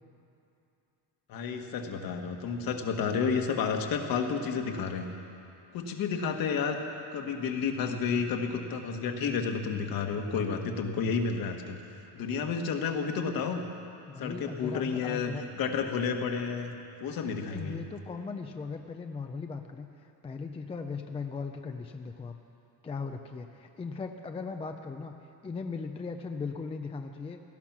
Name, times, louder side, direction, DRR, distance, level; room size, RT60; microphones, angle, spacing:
voice 1, 1.3-5.1 5.7-6.8 7.1-11.8 12.1-13.6 14.2-16.7 17.0-17.8, left 5 dB, 50° left, 4 dB, 1.5 m, -31 dB
voice 2, 14.1-15.4 17.5-22.3 22.8-25.1 25.4-27.4, left 4 dB, 15° left, 5 dB, 0.4 m, -38 dB
17.5 x 13.5 x 6.0 m, 2.8 s
cardioid pair, 160°, 44 cm